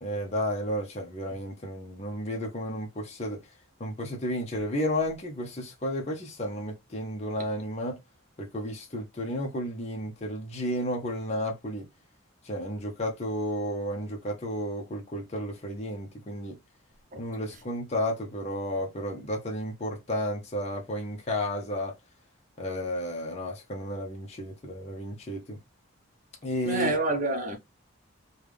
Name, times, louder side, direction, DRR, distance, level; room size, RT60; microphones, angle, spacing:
voice 1, 0.0-3.4 3.8-8.0 8.4-11.9 12.4-16.6 17.2-22.0 22.6-25.6 26.4-26.9, equal, 30° left, 0.6 m, -32 dB
voice 2, 26.6-27.6, right 2 dB, 35° right, 0.8 m, -27 dB
3.4 x 2.3 x 3.3 m
head